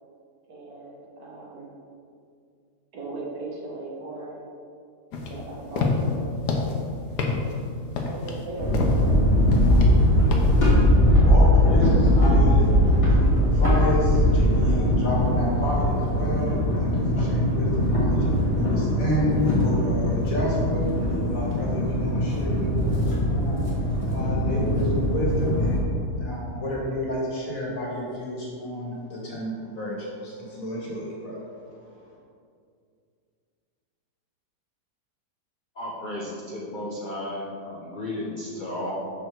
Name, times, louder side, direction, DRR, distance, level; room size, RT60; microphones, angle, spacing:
voice 1, 0.5-1.7 2.9-4.4 5.3-6.3 8.0-8.8, right 2 dB, 70° right, -1 dB, 1.5 m, -38 dB
sound 1, 5.1-10.7, left 3 dB, 85° left, 1.4 m, -28 dB
sound 2, 8.6-25.8, equal, 20° left, 1.7 m, -21 dB
voice 2, 10.7-20.9 21.3-23.7 24.1-32.0, equal, 55° left, -5 dB, 2.1 m, -30 dB
voice 3, 35.7-38.9, left 1 dB, 40° left, -5 dB, 0.8 m, -33 dB
6.5 x 5.4 x 4.6 m, 2.3 s
omnidirectional pair, 1.7 m